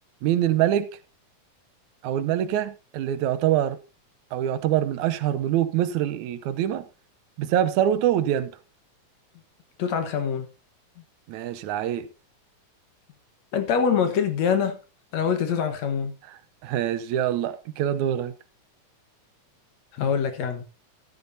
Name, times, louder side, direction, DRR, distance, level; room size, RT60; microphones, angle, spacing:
voice 1, 0.2-0.9 2.0-3.8 4.3-6.9 7.4-8.5 11.3-12.1 16.6-18.3, right 11 dB, 80° right, 2.1 m, -24 dB
voice 2, 9.8-10.5 13.5-14.8 15.1-16.1 19.9-20.6, left 7 dB, 65° left, 2.5 m, -24 dB
12.5 x 12.5 x 2.7 m
omnidirectional pair, 3.4 m